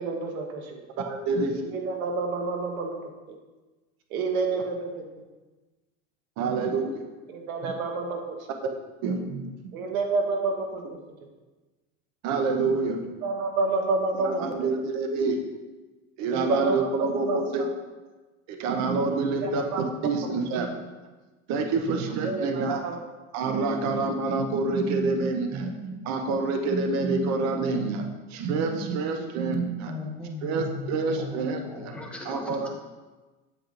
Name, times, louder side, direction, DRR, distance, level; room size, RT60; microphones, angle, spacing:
voice 1, 0.0-0.8 1.6-3.4 4.1-5.0 7.3-8.5 9.7-11.0 13.0-14.7 16.3-17.7 19.4-19.8 20.2-20.4 22.2-23.0, right 3 dB, 90° right, 3 dB, 1.4 m, -29 dB
voice 2, 1.0-1.6 6.4-7.1 7.6-7.7 9.0-9.7 12.2-13.0 14.2-15.4 16.2-17.6 18.5-20.7 21.5-22.8 23.3-29.9 30.4-31.6 32.3-32.7, right 3 dB, 40° right, 5 dB, 0.8 m, -27 dB
voice 3, 29.8-32.7, left 2 dB, 5° left, -3 dB, 1.1 m, -37 dB
8.8 x 7.2 x 2.5 m, 1.2 s
supercardioid pair, 135°, 41 cm